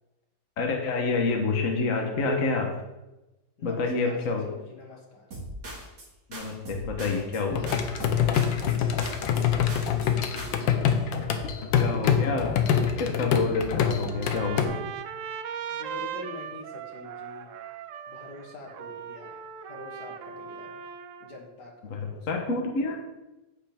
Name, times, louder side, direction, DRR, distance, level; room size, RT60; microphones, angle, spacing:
voice 1, 0.6-2.7 3.6-4.5 6.3-7.6 11.8-12.5 13.0-14.7 21.9-23.0, left 3 dB, 50° left, 2 dB, 1.4 m, -28 dB
voice 2, 3.6-4.2 4.4-5.3 8.0-10.6 11.1-11.9 15.7-17.5 18.1-20.8 21.2-22.3, left 3 dB, 65° left, 1 dB, 2.1 m, -45 dB
sound 1, 5.3-6.1 6.3-7.4 7.7-8.8 9.0-10.1 10.4-10.7, right 1 dB, 60° right, 2.7 m, -39 dB
sound 2, 7.5-14.7, left 8 dB, 85° left, 1.6 m, -25 dB
Trumpet, 14.1-21.4, right 8 dB, 80° right, 0.7 m, -39 dB
10.0 x 8.4 x 3.5 m, 1.0 s
omnidirectional pair, 2.0 m